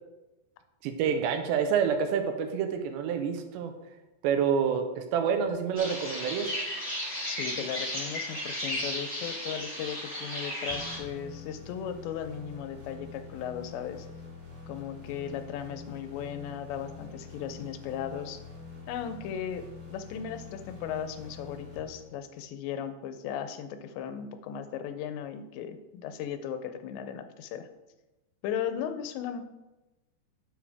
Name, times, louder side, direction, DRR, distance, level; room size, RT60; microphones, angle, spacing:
voice 1, 0.8-3.7 4.2-6.5, right 7 dB, 85° right, 7 dB, 3.0 m, -28 dB
sound 1, 5.8-11.0, equal, 5° right, 2.1 m, -34 dB
voice 2, 7.3-14.1 14.7-18.4 18.9-27.7 28.4-29.4, left 8 dB, 85° left, 9 dB, 2.9 m, -37 dB
sound 2, 10.7-22.4, left 4 dB, 45° right, 1.2 m, -46 dB
9.9 x 7.6 x 3.5 m, 1.0 s
omnidirectional pair, 5.0 m